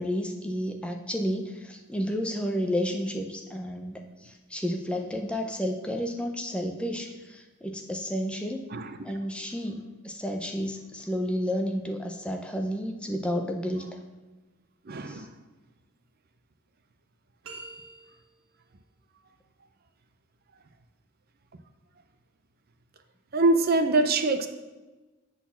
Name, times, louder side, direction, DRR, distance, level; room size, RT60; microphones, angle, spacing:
voice 1, 0.0-8.6 9.0-14.0 15.1-15.3, equal, 5° left, 3 dB, 0.5 m, -31 dB
voice 2, 14.9-15.3 23.3-24.5, right 2 dB, 45° right, 8 dB, 0.5 m, -24 dB
sound 1, 17.4-18.5, right 3 dB, 70° right, 1.5 m, -45 dB
8.2 x 4.1 x 7.0 m, 1.2 s
head